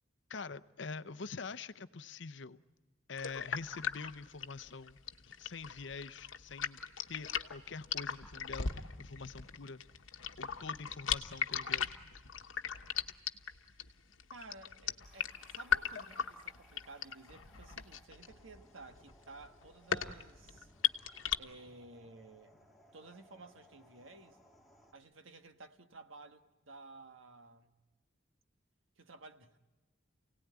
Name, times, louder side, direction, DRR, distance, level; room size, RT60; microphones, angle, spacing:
voice 1, 0.3-2.6 3.1-5.0 5.4-6.8 7.1-9.8 10.4-12.0, left 4 dB, 65° left, 0.7 m, -45 dB
sound 1, 3.2-21.4, left 8 dB, 85° left, 1.1 m, -38 dB
voice 2, 14.3-20.7 21.4-22.5 22.9-24.4 24.9-27.7 29.0-29.6, right 3 dB, 85° right, 1.4 m, -54 dB
sound 2, 15.0-24.9, equal, ahead, 2.0 m, -64 dB
28.5 x 18.0 x 9.4 m
head